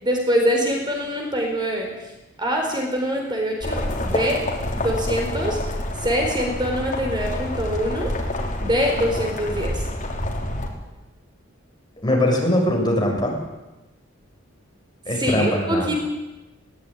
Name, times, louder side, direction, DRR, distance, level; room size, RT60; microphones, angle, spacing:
voice 1, 0.0-1.9 2.4-4.4 4.8-5.6 6.0-8.1 8.6-9.8 15.2-15.9, equal, 20° right, 1 dB, 4.3 m, -24 dB
sound 1, 3.6-10.7, left 1 dB, 40° left, 4.2 m, -28 dB
voice 2, 12.0-13.3 15.1-16.0, left 1 dB, 20° left, -1 dB, 6.8 m, -21 dB
20.5 x 18.0 x 9.9 m, 1.0 s
head